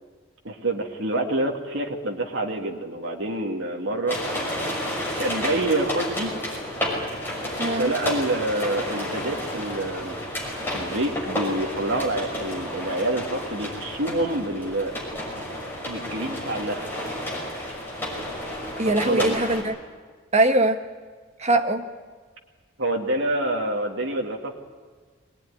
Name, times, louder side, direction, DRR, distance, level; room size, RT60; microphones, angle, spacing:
voice 1, 0.4-4.2 5.2-6.3 7.8-10.2 10.7-15.0 15.9-17.0 19.0-19.4 22.8-24.5, right 1 dB, 65° right, 0 dB, 2.1 m, -27 dB
sound 1, 4.1-19.6, left 1 dB, 10° left, 6.1 m, -31 dB
voice 2, 7.6-7.9 18.8-19.7 20.3-20.8 21.4-21.9, right 2 dB, 30° right, 5 dB, 1.2 m, -21 dB
22.5 x 19.0 x 9.9 m, 1.5 s
head